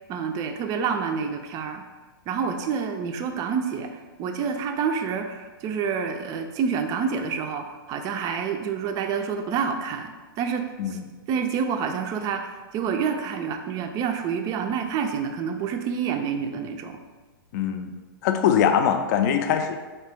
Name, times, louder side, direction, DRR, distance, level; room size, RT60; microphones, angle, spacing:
voice 1, 0.1-1.8 2.3-3.9 4.2-11.0 11.3-17.0, right 6 dB, 30° right, 6 dB, 0.4 m, -28 dB
voice 2, 17.5-18.0 18.2-19.8, left 8 dB, 50° left, 7 dB, 0.4 m, -22 dB
4.3 x 2.8 x 3.4 m, 1.3 s
hypercardioid pair, 120°, 12 cm